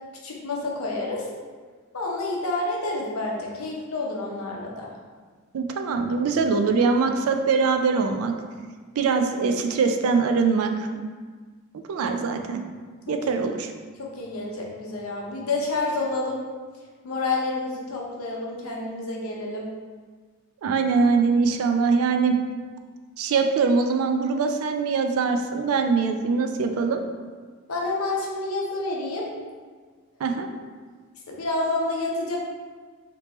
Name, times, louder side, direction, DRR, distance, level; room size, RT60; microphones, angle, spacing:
voice 1, 0.2-1.3 1.9-4.9 13.1-13.2 14.0-16.4 17.0-19.7 27.7-29.3 31.3-32.4, left 2 dB, 80° left, -2 dB, 0.7 m, -29 dB
voice 2, 5.5-8.4 9.0-10.7 11.9-12.6 13.1-13.7 20.6-22.4 23.2-27.0 30.2-30.5, right 4 dB, 80° right, 5 dB, 0.4 m, -22 dB
3.4 x 2.9 x 2.9 m, 1.5 s
head